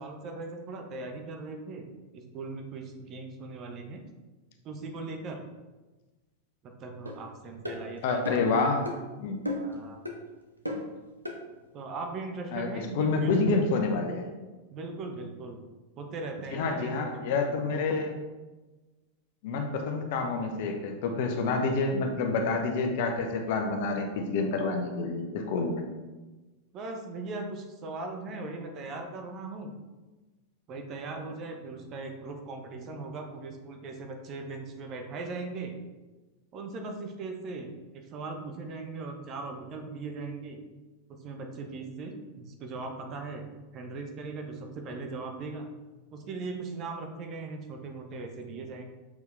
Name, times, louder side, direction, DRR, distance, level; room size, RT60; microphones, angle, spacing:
voice 1, 0.0-1.9 2.1-4.0 4.6-5.4 6.6-8.6 9.6-10.1 11.7-13.6 14.7-15.6 16.0-17.0 26.7-29.7 30.7-35.7 36.5-40.6 41.1-43.4 43.7-45.7 46.1-48.8, right 3 dB, 35° right, 4 dB, 1.0 m, -39 dB
sound 1, 7.1-7.2 7.6-7.8 8.3-8.5 8.8-9.0 9.5-9.8 10.1-10.2 10.7-10.9 11.2-11.4, left 1 dB, 85° right, 0.9 m, -34 dB
voice 2, 8.0-8.8 9.2-9.4 12.5-14.3 16.5-18.1 19.4-25.8, left 3 dB, 50° left, 4 dB, 0.9 m, -28 dB
7.0 x 4.6 x 3.4 m, 1.2 s
figure-of-eight pair, 90°, 0 cm